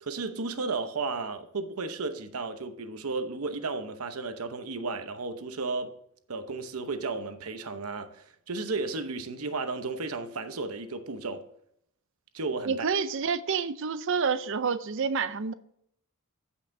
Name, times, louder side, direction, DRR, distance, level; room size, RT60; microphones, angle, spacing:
voice 1, 0.0-5.9 6.3-11.5 12.3-12.9, right 3 dB, 85° right, 0.9 m, -34 dB
voice 2, 12.7-15.5, right 5 dB, 60° right, 0.5 m, -28 dB
14.5 x 5.7 x 2.7 m
head